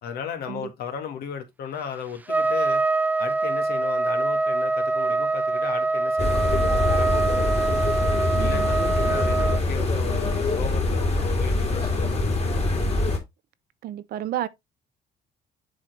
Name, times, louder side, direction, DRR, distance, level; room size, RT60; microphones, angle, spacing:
voice 1, 0.0-2.8 3.2-7.6 8.4-12.6, left 7 dB, 65° left, 1.7 m, -35 dB
Trumpet, 2.3-9.6, right 3 dB, 10° right, 0.4 m, -24 dB
sound 1, 6.2-13.2, left 2 dB, 35° left, 2.9 m, -24 dB
voice 2, 8.3-8.7 9.0-9.1 13.8-14.5, right 12 dB, 65° right, 0.7 m, -31 dB
7.2 x 4.5 x 3.3 m
cardioid pair, 110°, 17 cm